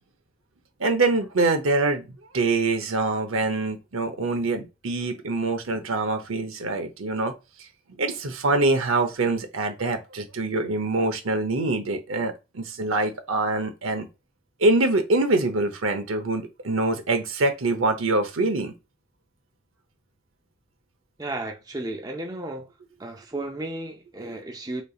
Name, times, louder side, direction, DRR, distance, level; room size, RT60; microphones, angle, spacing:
voice 1, 0.8-7.3 8.0-14.1 14.6-18.7 24.2-24.3, right 2 dB, 80° right, 0.8 m, -24 dB
voice 2, 21.2-22.7 23.0-24.8, right 2 dB, 20° right, 0.5 m, -34 dB
4.0 x 3.3 x 2.4 m
head